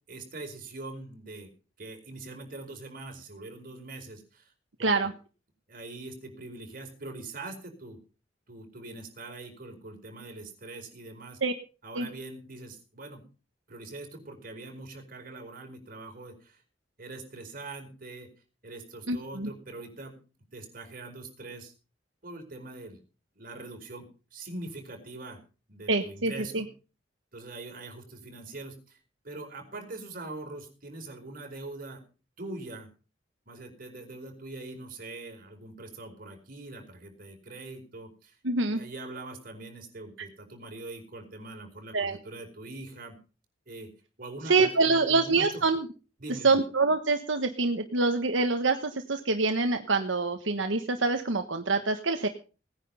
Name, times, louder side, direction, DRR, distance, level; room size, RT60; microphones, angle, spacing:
voice 1, 0.1-1.5 1.8-4.5 4.8-4.9 5.7-8.0 8.5-11.4 11.8-13.2 13.7-16.6 17.0-18.3 18.6-20.2 20.5-21.7 22.2-23.0 23.3-25.4 25.7-26.7 27.3-32.0 32.4-32.9 33.5-38.4 38.7-43.2 43.7-43.9 44.2-45.6 46.2-46.6, right 2 dB, 50° right, 3 dB, 4.8 m, -43 dB
voice 2, 4.8-5.1 11.4-11.5 11.9-12.1 19.1-19.5 25.9-26.6 38.4-38.8 41.9-42.2 44.5-45.9 46.4-52.3, right 3 dB, 80° right, 6 dB, 1.3 m, -26 dB
18.5 x 10.0 x 5.5 m, 0.36 s
head